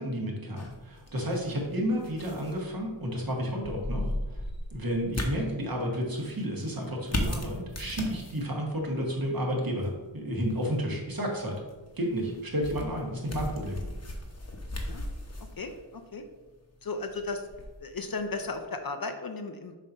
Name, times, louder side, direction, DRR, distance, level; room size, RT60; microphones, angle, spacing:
voice 1, 0.0-4.4 4.7-11.6 11.9-13.8, equal, 45° right, -1 dB, 1.5 m, -31 dB
sound 1, 0.6-18.6, left 1 dB, 35° left, 1.0 m, -39 dB
voice 2, 15.4-16.3 16.8-17.4 17.8-19.8, left 3 dB, 50° left, 7 dB, 0.6 m, -35 dB
7.2 x 2.8 x 5.4 m, 1.2 s
wide cardioid pair, 100°, 47 cm